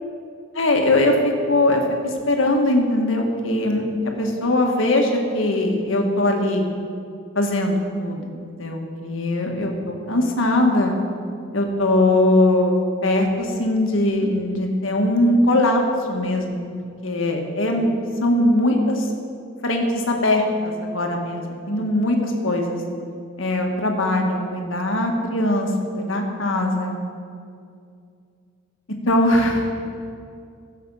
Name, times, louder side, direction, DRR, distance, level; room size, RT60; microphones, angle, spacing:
voice 1, 0.5-3.9 4.2-6.7 7.3-11.0 11.5-12.8 13.0-15.8 16.1-16.6 17.0-17.9 18.2-19.1 19.6-22.8 23.4-25.7 26.0-26.9 29.1-29.7, left 1 dB, 75° left, 2 dB, 1.7 m, -21 dB
15.5 x 7.5 x 5.6 m, 2.4 s
head